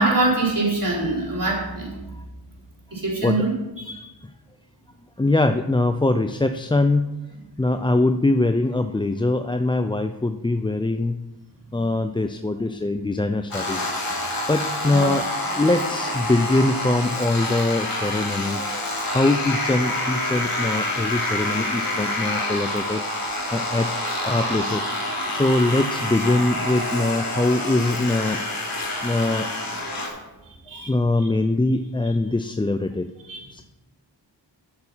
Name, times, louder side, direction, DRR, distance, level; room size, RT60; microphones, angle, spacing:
voice 1, 0.0-2.1 2.9-3.5 3.8-4.1 14.9-15.1 30.7-30.9 33.3-33.6, right 2 dB, 50° right, -4 dB, 3.8 m, -24 dB
voice 2, 5.2-7.1 7.6-11.2 11.7-13.8 14.5-15.2 15.5-23.9 24.2-24.9 25.3-28.8 29.0-29.5 30.7-33.1 33.5-33.6, left 2 dB, 10° left, 8 dB, 0.4 m, -23 dB
sound 1, 13.5-30.1, left 1 dB, 55° left, 3.3 m, -27 dB
8.7 x 6.7 x 5.7 m, 1.0 s
cardioid pair, 50°, 43 cm